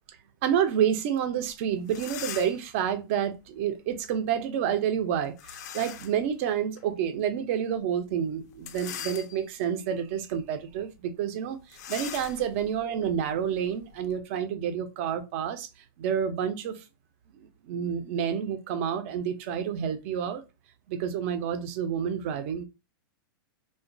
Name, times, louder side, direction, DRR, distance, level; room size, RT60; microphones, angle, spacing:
voice 1, 0.4-15.7 16.0-16.8 17.4-20.4 20.9-22.6, right 8 dB, 35° right, 0.4 m, -29 dB
sound 1, 1.5-1.6 1.8-2.7 5.4-6.2 6.8-6.9 8.5-9.7 10.2-10.4 10.7-10.8 11.7-14.2, left 9 dB, 50° left, 0.4 m, -41 dB
2.9 x 2.2 x 2.5 m
supercardioid pair, 170°, 12 cm